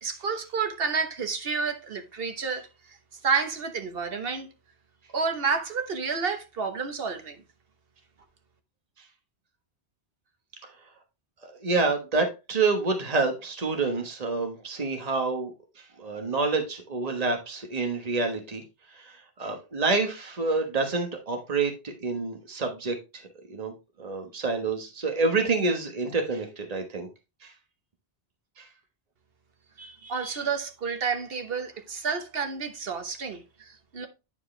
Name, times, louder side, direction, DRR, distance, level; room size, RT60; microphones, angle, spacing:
voice 1, 0.0-3.0 3.2-4.5 5.1-7.4 29.8-34.1, right 5 dB, 60° right, 1.3 m, -30 dB
voice 2, 11.4-18.6 18.9-23.7 24.0-27.1 27.4-27.5 28.6-28.7, right 3 dB, 35° right, 1.4 m, -28 dB
9.8 x 4.7 x 3.3 m
omnidirectional pair, 1.1 m